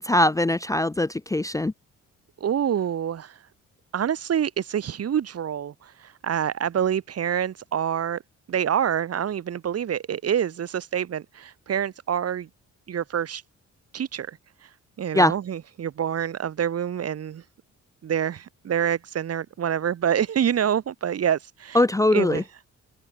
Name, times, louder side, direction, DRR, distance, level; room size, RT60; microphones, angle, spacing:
voice 1, 0.0-1.7 15.1-15.3 21.7-22.4, left 1 dB, 10° left, 0.7 m, -21 dB
voice 2, 2.4-3.4 3.9-8.2 8.5-12.5 12.9-13.4 13.9-14.4 15.0-17.4 18.0-21.8 22.1-22.4, right 9 dB, 55° right, 1.9 m, -26 dB
open air
cardioid pair, 90°, 30 cm